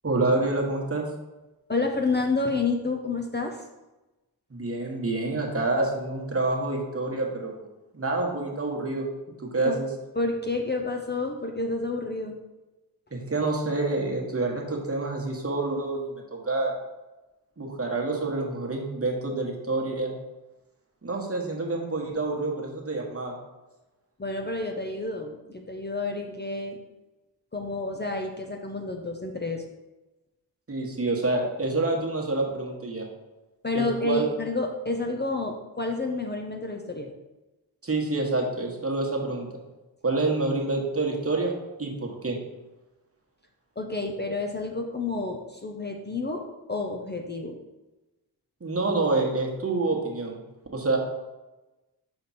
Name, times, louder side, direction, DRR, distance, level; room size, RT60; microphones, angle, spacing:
voice 1, 0.0-1.0 4.5-7.7 7.9-9.1 9.4-9.9 13.1-16.7 17.6-20.1 21.0-23.3 30.7-33.1 33.7-34.3 37.8-39.5 40.0-41.5 41.8-42.4 48.6-50.4 50.7-51.0, right 2 dB, 35° right, 0 dB, 1.3 m, -27 dB
voice 2, 1.7-3.6 9.6-9.8 10.2-12.4 24.2-26.8 27.5-29.6 33.6-37.1 43.8-47.6, left 3 dB, 25° left, 2 dB, 0.6 m, -29 dB
6.0 x 5.0 x 4.1 m, 1.1 s
wide cardioid pair, 90°, 40 cm